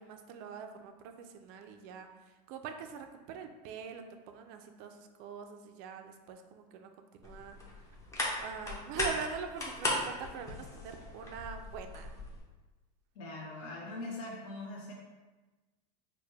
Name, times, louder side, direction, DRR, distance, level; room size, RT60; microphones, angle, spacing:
voice 1, 0.0-7.6 8.4-12.1, right 6 dB, 45° right, 6 dB, 0.4 m, -44 dB
sound 1, 7.2-12.4, left 1 dB, 15° left, 0.6 m, -37 dB
voice 2, 13.1-14.9, left 2 dB, 55° left, -3 dB, 0.7 m, -42 dB
4.6 x 2.2 x 3.3 m, 1.2 s
supercardioid pair, 145°, 21 cm